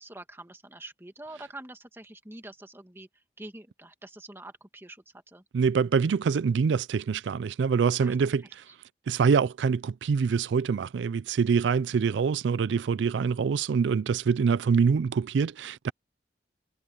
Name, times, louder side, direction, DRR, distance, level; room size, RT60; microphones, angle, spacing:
voice 1, 0.0-3.1 3.4-5.4 8.0-8.2, right 1 dB, 15° right, 1.7 m, -45 dB
voice 2, 5.5-8.6 9.1-15.9, right 6 dB, 85° right, 0.4 m, -25 dB
head